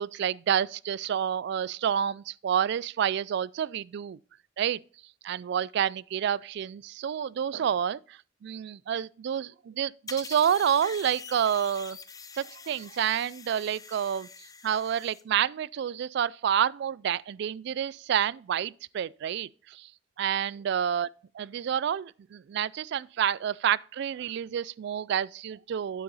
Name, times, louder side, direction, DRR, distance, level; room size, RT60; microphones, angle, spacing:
voice 1, 0.0-4.2 4.6-4.8 5.2-12.0 12.4-14.3 14.6-19.9 20.2-21.1 21.3-26.0, right 9 dB, 60° right, 0.3 m, -29 dB
sound 1, 10.1-15.2, left 5 dB, 20° left, 0.5 m, -45 dB
9.0 x 7.2 x 4.0 m
head